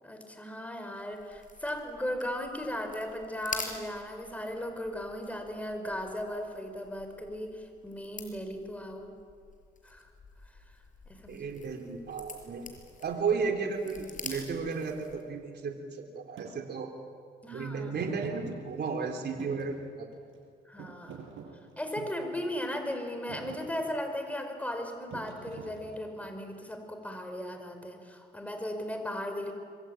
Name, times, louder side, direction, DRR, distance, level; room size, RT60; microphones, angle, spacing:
voice 1, 0.0-9.2 9.8-10.0 11.1-11.4 17.4-17.9 20.7-21.2 21.8-29.5, left 1 dB, 5° left, 5 dB, 5.2 m, -37 dB
sound 1, 0.9-15.3, left 4 dB, 40° left, 5.5 m, -47 dB
voice 2, 11.3-12.7 13.0-16.9 17.5-20.1, right 5 dB, 55° right, 3 dB, 3.6 m, -34 dB
Thump thud, 16.4-16.5 17.9-19.0 19.4-20.4 20.8-22.2 22.8-23.0 23.3-23.7 25.1-26.2, right 6 dB, 80° right, 7.0 m, -45 dB
26.0 x 23.0 x 9.0 m, 2.3 s
cardioid pair, 90°, 20 cm